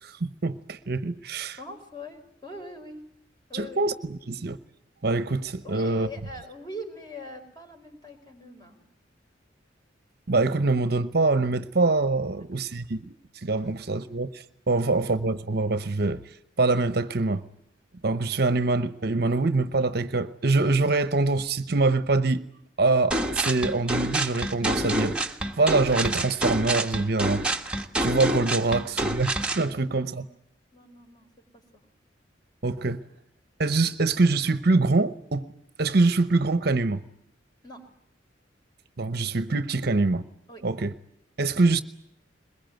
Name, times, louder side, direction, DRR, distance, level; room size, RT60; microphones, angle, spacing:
voice 1, 0.0-1.6 3.5-4.6 5.0-6.1 10.3-13.1 13.4-16.2 16.6-17.4 18.0-22.4 22.8-25.1 25.6-27.4 28.0-30.3 32.6-33.0 33.6-35.5 35.8-37.0 39.0-40.2 40.6-40.9 41.4-41.8, right 3 dB, 55° right, 0.9 m, -24 dB
voice 2, 1.6-3.0 3.5-3.8 5.6-8.8 12.5-12.7 28.8-29.4 29.7-30.3 30.7-31.3 31.5-31.6 37.6-37.9 40.5-40.6, left 1 dB, 20° left, 4.6 m, -42 dB
sound 1, 23.1-29.7, right 1 dB, 5° right, 1.4 m, -27 dB
22.5 x 21.5 x 9.2 m
head